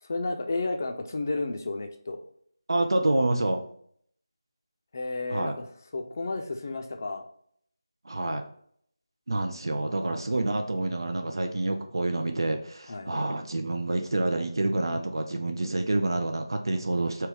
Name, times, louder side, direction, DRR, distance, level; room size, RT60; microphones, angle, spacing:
voice 1, 0.0-2.2 4.9-5.6 5.9-7.2 9.8-10.2 12.9-13.1 14.9-15.0, left 3 dB, 35° left, 5 dB, 0.5 m, -32 dB
voice 2, 2.7-3.6 5.3-5.6 8.0-8.4 9.3-17.3, right 2 dB, 60° right, 4 dB, 0.5 m, -28 dB
3.4 x 3.1 x 4.4 m, 0.64 s
figure-of-eight pair, 170°, 3 cm